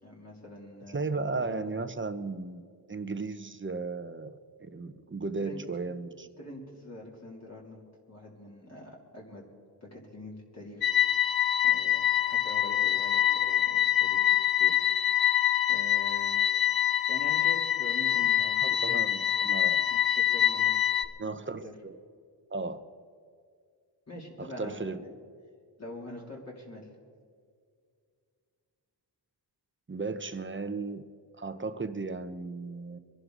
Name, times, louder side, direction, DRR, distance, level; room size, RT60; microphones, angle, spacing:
voice 1, 0.0-1.8 5.4-5.6 6.4-9.4 9.8-10.9 11.6-14.8 15.7-16.5 17.1-19.3 19.9-20.8 21.2-21.7 24.1-25.1 25.8-26.9, left 1 dB, 35° left, -3 dB, 3.2 m, -45 dB
voice 2, 0.9-2.6 2.9-6.3 18.6-19.8 21.2-22.0 22.5-22.8 24.4-25.1 29.9-31.0 31.4-33.0, right 3 dB, 25° right, 10 dB, 1.0 m, -35 dB
sound 1, 10.8-21.1, left 11 dB, 50° left, 0.8 m, -25 dB
24.0 x 11.0 x 4.0 m, 2.2 s
cardioid pair, 80°, 46 cm